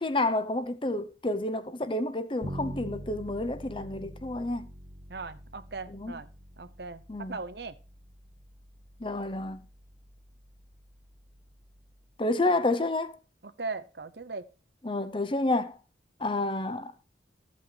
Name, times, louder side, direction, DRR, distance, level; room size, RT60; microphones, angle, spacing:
voice 1, 0.0-4.7 5.9-6.1 7.1-7.4 9.0-9.6 12.2-13.2 14.8-15.8 16.2-16.9, left 2 dB, 25° left, 0.8 m, -29 dB
Bass guitar, 2.4-12.2, right 1 dB, 35° right, 1.1 m, -46 dB
voice 2, 5.1-6.3 6.6-7.0 7.3-7.7 13.4-14.5, right 3 dB, 60° right, 0.9 m, -38 dB
14.0 x 8.4 x 3.0 m
head